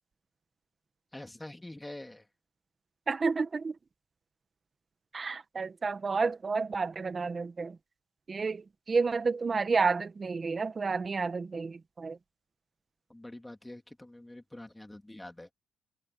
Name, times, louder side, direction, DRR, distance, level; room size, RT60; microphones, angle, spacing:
voice 1, 1.1-2.3 13.1-15.5, left 1 dB, 10° left, 3.1 m, -45 dB
voice 2, 3.1-3.7 5.1-7.8 8.3-12.2, right 4 dB, 35° right, 1.6 m, -30 dB
cardioid pair, 90°, 0 cm